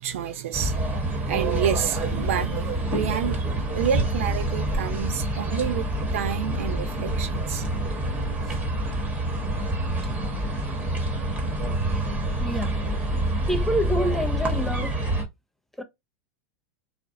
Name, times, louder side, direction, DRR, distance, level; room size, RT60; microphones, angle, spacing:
voice 1, 0.0-5.9 6.1-7.7, right 9 dB, 80° right, 0.4 m, -29 dB
sound 1, 0.5-15.2, right 1 dB, 20° right, 0.9 m, -27 dB
voice 2, 12.4-12.8 13.5-15.0 15.8-15.9, equal, 5° left, 0.4 m, -27 dB
2.4 x 2.0 x 2.5 m
hypercardioid pair, 115°, 7 cm